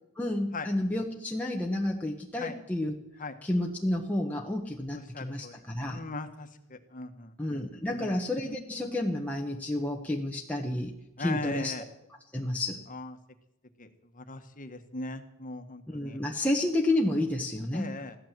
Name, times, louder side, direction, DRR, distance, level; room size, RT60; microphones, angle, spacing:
voice 1, 0.2-3.0 3.4-6.0 7.4-10.9 11.2-11.7 12.3-12.8 15.9-17.9, left 1 dB, 5° left, -1 dB, 1.2 m, -30 dB
voice 2, 4.9-5.5 5.9-8.1 11.2-11.8 12.9-13.1 13.8-13.9 14.1-16.2 17.7-18.1, left 3 dB, 40° left, 7 dB, 1.6 m, -39 dB
15.5 x 12.0 x 7.6 m, 0.82 s
head